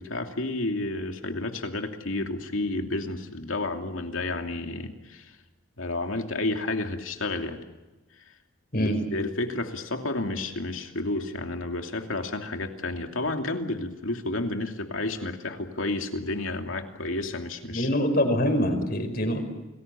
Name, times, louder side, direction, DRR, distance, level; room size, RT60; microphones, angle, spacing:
voice 1, 0.0-5.3 5.8-7.6 8.8-17.9, left 2 dB, 85° left, 4 dB, 2.7 m, -31 dB
voice 2, 17.7-19.4, equal, 50° left, 6 dB, 5.3 m, -24 dB
29.0 x 20.5 x 7.1 m, 1.1 s
head